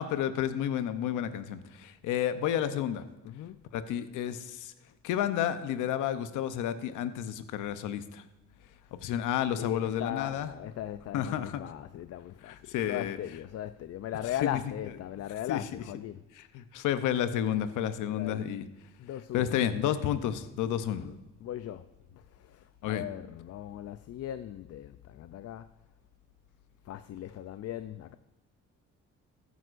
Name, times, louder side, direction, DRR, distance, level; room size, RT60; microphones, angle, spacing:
voice 1, 0.0-3.0 3.7-4.7 5.0-8.2 9.0-10.5 11.1-11.7 12.4-13.2 14.4-14.6 15.5-15.6 16.4-18.7 19.3-21.0 22.8-23.0, left 10 dB, 90° left, 0.7 m, -31 dB
voice 2, 3.2-3.7 9.6-16.2 18.1-18.5 19.0-19.6 20.8-21.2 21.4-21.9 22.2-25.7 26.8-28.2, left 12 dB, 55° left, 0.5 m, -39 dB
14.5 x 9.2 x 2.5 m
cardioid pair, 90°, 30 cm